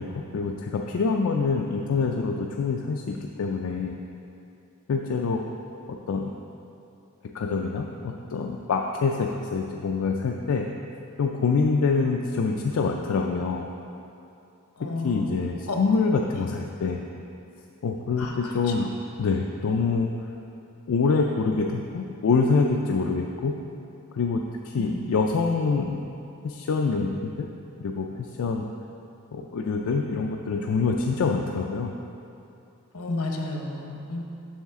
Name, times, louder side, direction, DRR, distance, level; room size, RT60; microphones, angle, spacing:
voice 1, 0.0-4.0 4.9-5.4 5.9-6.3 7.3-10.7 11.2-13.7 15.0-17.0 17.8-18.9 19.2-20.1 20.9-23.5 24.1-26.1 26.4-27.5 27.8-28.6 29.3-31.9, left 4 dB, 65° left, 1 dB, 0.4 m, -25 dB
voice 2, 14.8-15.3 15.7-15.8 16.3-16.4 18.2-18.7 24.8-25.0 32.9-34.2, left 2 dB, 80° left, 1 dB, 0.9 m, -32 dB
7.2 x 6.4 x 3.6 m, 2.7 s
head